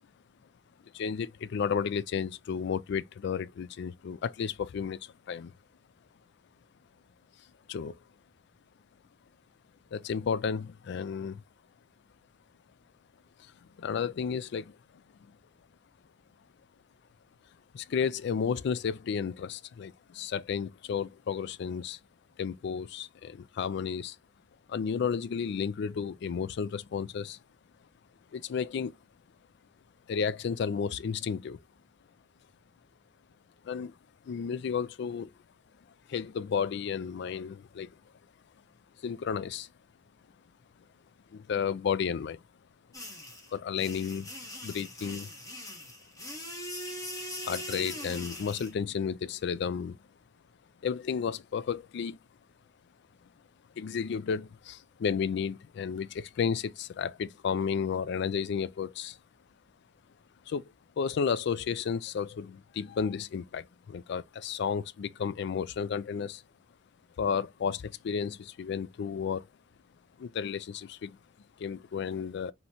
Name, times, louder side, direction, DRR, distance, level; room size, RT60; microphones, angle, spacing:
voice 1, 0.9-5.5 7.7-7.9 9.9-11.4 13.8-14.8 15.2-15.3 17.7-22.0 22.4-24.2 24.7-27.4 28.3-28.9 30.1-31.6 33.6-33.9 34.3-35.3 36.1-37.9 39.0-39.7 41.3-42.4 43.5-44.3 44.6-45.3 47.4-50.0 50.8-52.2 53.8-59.2 60.5-66.4 67.2-69.5 70.2-71.2 71.6-72.5, left 6 dB, 65° left, 0.3 m, -32 dB
sound 1, 42.9-48.7, left 1 dB, 20° left, 1.2 m, -41 dB
5.4 x 2.9 x 2.8 m
head